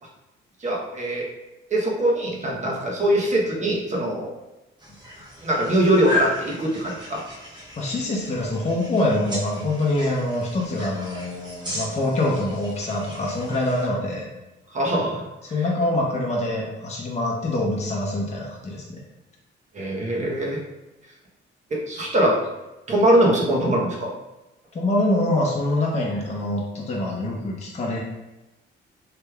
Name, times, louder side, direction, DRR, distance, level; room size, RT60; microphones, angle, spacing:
voice 1, 0.6-1.3 1.7-4.3 5.4-7.2 14.7-15.2 19.7-20.6 21.7-22.4 22.9-24.1, right 1 dB, 35° right, -2 dB, 0.8 m, -22 dB
sound 1, 4.8-13.9, left 2 dB, 20° right, 1.2 m, -35 dB
voice 2, 7.8-14.3 15.5-19.0 24.7-28.0, left 1 dB, 35° left, -3 dB, 0.7 m, -25 dB
3.3 x 3.1 x 2.2 m, 1.0 s
cardioid pair, 90°, 20 cm